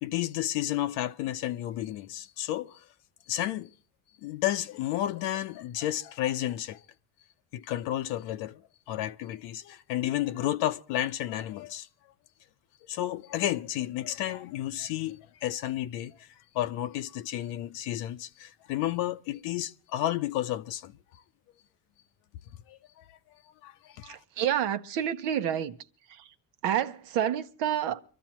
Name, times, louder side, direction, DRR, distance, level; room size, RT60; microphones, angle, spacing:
voice 1, 0.0-2.9 3.3-3.7 4.2-6.8 7.5-8.6 8.9-11.9 12.8-21.2 22.7-23.2 23.6-24.2, left 13 dB, 85° left, 0.7 m, -32 dB
voice 2, 24.0-25.7 26.6-28.0, right 10 dB, 85° right, 1.1 m, -28 dB
24.5 x 13.0 x 3.0 m
cardioid pair, 95°, 41 cm